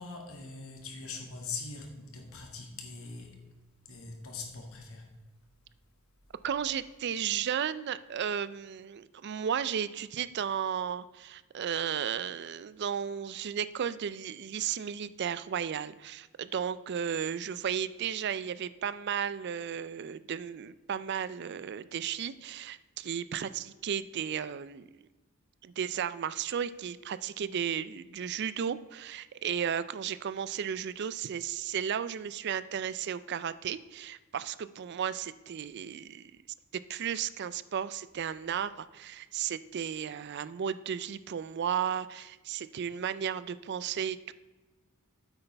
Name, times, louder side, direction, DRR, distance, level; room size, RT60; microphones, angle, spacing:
voice 1, 0.0-3.5 3.9-5.1, left 4 dB, 70° left, 2 dB, 1.9 m, -42 dB
voice 2, 6.4-24.9 25.6-36.3 36.9-44.3, right 8 dB, 50° right, 15 dB, 0.4 m, -34 dB
9.6 x 8.1 x 3.4 m, 1.2 s
head